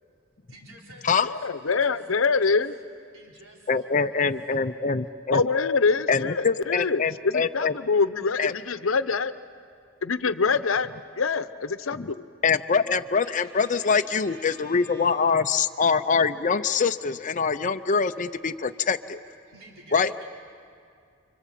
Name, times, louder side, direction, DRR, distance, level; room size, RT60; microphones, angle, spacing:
voice 1, 0.5-1.3 1.7-2.6 3.1-4.3 13.2-15.3 19.5-20.3, right 1 dB, 90° right, -2 dB, 4.0 m, -48 dB
voice 2, 1.3-2.7 5.3-9.3 10.0-10.9 11.2-12.2, left 4 dB, 85° left, 13 dB, 0.8 m, -25 dB
voice 3, 3.7-5.5 6.1-7.7 8.4-8.5 11.9-12.1 12.4-19.2 19.9-20.1, left 5 dB, 40° left, 8 dB, 0.6 m, -24 dB
29.5 x 25.0 x 7.5 m, 2.3 s
head